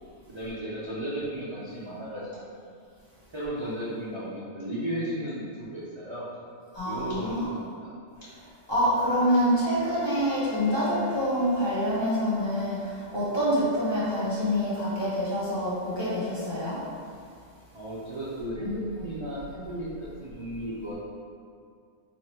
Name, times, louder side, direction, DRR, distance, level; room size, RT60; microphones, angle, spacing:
voice 1, 0.3-2.3 3.3-6.3 6.9-7.9 17.7-20.9, equal, 35° right, -10 dB, 0.5 m, -34 dB
voice 2, 6.7-7.4 8.7-16.8, equal, 25° left, -10 dB, 1.0 m, -26 dB
Bowed string instrument, 9.3-12.7, left 4 dB, 70° left, 1.3 m, -44 dB
3.1 x 2.5 x 4.2 m, 2.2 s
omnidirectional pair, 1.2 m